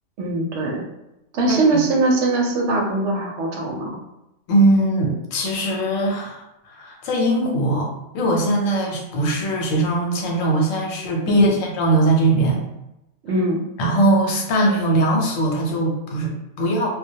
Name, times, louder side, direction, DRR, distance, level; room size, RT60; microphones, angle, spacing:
voice 1, 0.2-0.8 1.3-4.0 11.3-11.6 13.2-13.6, right 2 dB, 70° right, -1 dB, 0.8 m, -21 dB
voice 2, 4.5-7.9 8.1-12.6 13.8-16.9, right 1 dB, 85° left, 0 dB, 1.0 m, -20 dB
2.2 x 2.1 x 2.7 m, 0.91 s
omnidirectional pair, 1.3 m